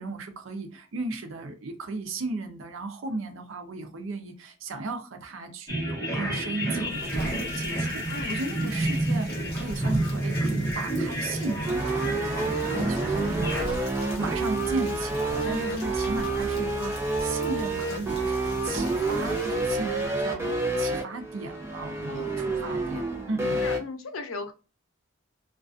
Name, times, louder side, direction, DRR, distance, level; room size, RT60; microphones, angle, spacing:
voice 1, 0.0-9.3 9.5-23.7, right 3 dB, 75° right, 6 dB, 0.5 m, -35 dB
sound 1, 5.7-13.6, right 1 dB, 15° left, 0.9 m, -29 dB
Rain, 6.8-19.9, left 1 dB, 50° left, 0.8 m, -42 dB
voice 2, 8.1-8.6 15.4-16.2 22.1-22.6 23.6-24.5, left 3 dB, 80° left, 7 dB, 0.5 m, -38 dB
sound 2, 11.7-23.8, right 2 dB, 10° right, 0.6 m, -28 dB
2.4 x 2.3 x 2.4 m, 0.33 s
head